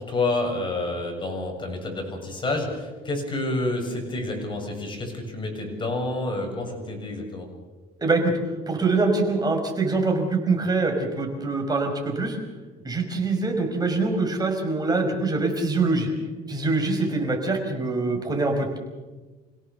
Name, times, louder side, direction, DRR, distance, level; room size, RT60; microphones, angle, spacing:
voice 1, 0.0-7.5, left 2 dB, 30° left, 2 dB, 7.2 m, -29 dB
voice 2, 8.0-8.3 8.7-12.4 12.8-16.1 16.5-18.8, right 3 dB, 25° right, 3 dB, 5.5 m, -24 dB
27.5 x 17.0 x 7.1 m, 1.3 s
cardioid pair, 110°, 17 cm